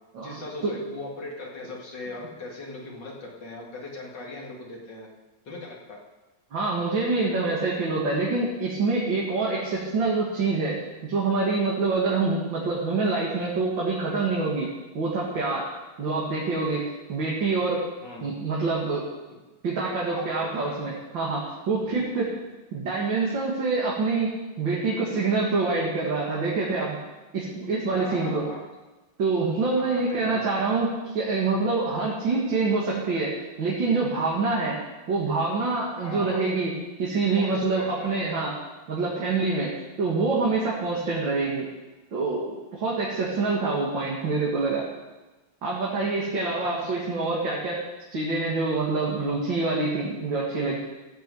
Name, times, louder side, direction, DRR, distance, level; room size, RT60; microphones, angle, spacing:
voice 1, 0.2-5.1 5.5-6.0 18.0-18.4 20.1-20.2 20.6-21.0 21.8-22.4 27.9-28.6 29.7-30.5 36.0-36.4 37.4-38.1 46.5-47.3, left 2 dB, 65° left, -2 dB, 2.9 m, -39 dB
voice 2, 6.5-10.8 11.0-14.7 14.9-15.7 16.0-16.8 17.1-17.8 18.2-19.0 19.6-22.3 22.7-24.3 24.6-27.0 27.3-28.4 29.2-33.3 33.6-34.8 35.1-36.7 37.0-38.5 38.9-39.7 40.0-41.7 42.1-44.8 45.6-47.8 48.1-50.8, right 3 dB, 75° right, -5 dB, 2.7 m, -26 dB
15.0 x 5.8 x 7.8 m, 1.2 s
omnidirectional pair, 2.1 m